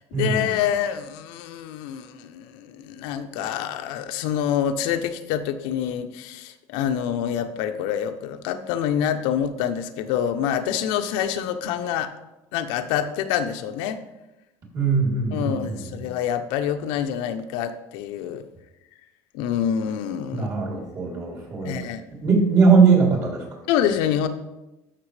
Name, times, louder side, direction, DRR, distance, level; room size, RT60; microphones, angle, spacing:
voice 1, 0.2-12.1 12.5-14.0 15.3-18.4 19.3-20.5 21.6-22.0 23.7-24.3, left 9 dB, 80° left, 7 dB, 0.7 m, -26 dB
voice 2, 14.7-15.7 20.3-21.8 22.2-23.4, right 5 dB, 45° right, -2 dB, 3.2 m, -20 dB
13.5 x 6.0 x 3.3 m, 0.98 s
cardioid pair, 135°, 8 cm